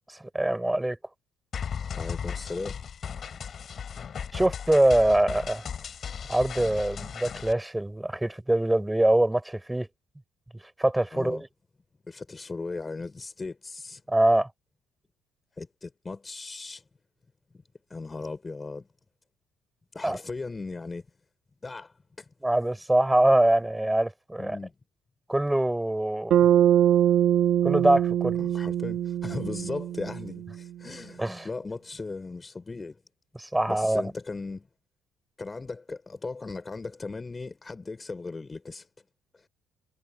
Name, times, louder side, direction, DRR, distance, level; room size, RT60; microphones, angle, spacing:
voice 1, 0.1-1.0 4.3-5.7 6.3-9.9 10.8-11.4 14.1-14.5 20.0-20.2 22.4-24.6 25.3-26.4 27.6-28.4 31.2-31.5 33.4-34.1, right 1 dB, 5° right, 6.5 m, -24 dB
sound 1, 1.5-7.5, left 7 dB, 40° left, 3.6 m, -36 dB
voice 2, 1.9-2.8 11.1-11.4 12.1-14.0 15.6-16.8 17.9-18.9 19.9-21.0 21.6-22.3 24.4-24.7 28.4-33.0 33.7-34.7 35.4-38.9 39.3-39.5, left 3 dB, 20° left, 5.6 m, -37 dB
Bass guitar, 26.3-30.7, right 10 dB, 60° right, 1.7 m, -23 dB
cardioid pair, 110°, 0 cm